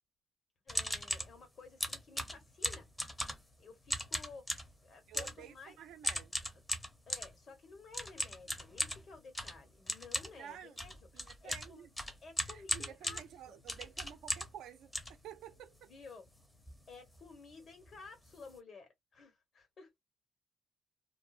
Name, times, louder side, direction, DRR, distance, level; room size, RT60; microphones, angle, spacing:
voice 1, 0.6-2.9 3.6-4.5 4.8-5.8 7.1-11.9 12.2-13.6 15.8-16.3 16.9-20.0, left 4 dB, 55° left, 1.4 m, -54 dB
sound 1, 0.7-1.3 1.8-3.5 3.9-4.7 5.1-5.4 6.0-7.3 7.9-14.6 14.9-15.8 16.3-16.4 16.5-16.8 17.1-17.3 17.9-18.0 18.2-18.5, left 1 dB, 10° left, 0.7 m, -38 dB
voice 2, 5.1-6.4 10.4-10.8 11.1-11.9 12.4-14.9 15.2-15.9, right 10 dB, 85° right, 0.5 m, -51 dB
2.5 x 2.0 x 2.5 m
cardioid pair, 90°, 0 cm